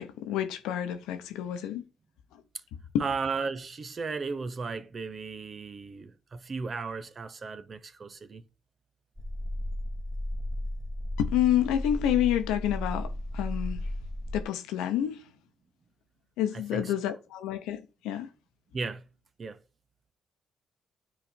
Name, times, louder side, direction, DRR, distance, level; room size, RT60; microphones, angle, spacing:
voice 1, 0.0-1.8 2.9-3.1 11.2-13.8 14.3-15.2 16.4-18.3, left 11 dB, 80° left, 0.8 m, -29 dB
voice 2, 3.0-8.4 16.5-16.9 18.7-19.0 19.4-19.6, right 4 dB, 45° right, 0.9 m, -35 dB
sound 1, 9.2-14.4, left 1 dB, 10° right, 1.0 m, -34 dB
9.8 x 4.1 x 4.3 m
hypercardioid pair, 50°, 0 cm